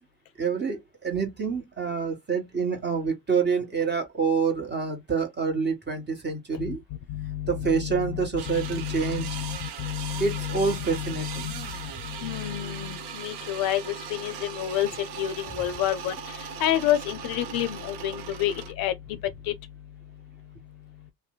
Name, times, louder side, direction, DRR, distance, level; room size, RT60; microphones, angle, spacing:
voice 1, 0.4-6.8 7.5-9.3 10.2-11.5, right 5 dB, 25° right, 1.3 m, -27 dB
voice 2, 7.1-19.6, left 12 dB, 50° left, 0.5 m, -30 dB
sound 1, 8.4-18.7, right 8 dB, 60° right, 0.8 m, -39 dB
2.6 x 2.1 x 3.8 m
hypercardioid pair, 60°, 45 cm